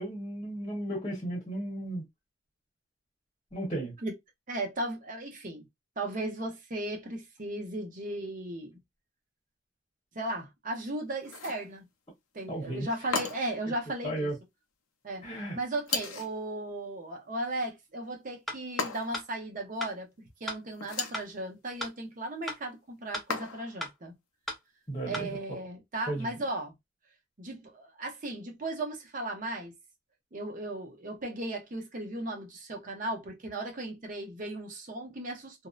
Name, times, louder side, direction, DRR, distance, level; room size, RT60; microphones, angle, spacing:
voice 1, 0.0-2.0 3.5-3.9 12.5-13.2 14.0-14.3 15.2-15.6 24.9-25.6 26.1-26.3, right 1 dB, 25° left, 0.9 m, -35 dB
voice 2, 4.5-5.7 6.0-8.8 10.1-11.9 12.3-14.3 15.0-15.3 15.5-24.2 25.0-26.7 27.4-29.7 30.3-35.7, right 1 dB, 40° right, 0.7 m, -36 dB
sound 1, 11.2-11.7 13.1-13.6 15.9-16.4 18.8-19.3 20.7-21.3 23.3-23.8, left 5 dB, 80° left, 0.5 m, -35 dB
sound 2, 18.5-18.6 19.1-19.3 19.8-19.9 20.5-20.6 21.1-21.3 21.8-21.9 22.5-22.6 23.1-23.3 23.8-23.9 24.5-24.6 25.1-25.3, left 1 dB, ahead, 0.4 m, -35 dB
2.6 x 2.0 x 2.3 m
head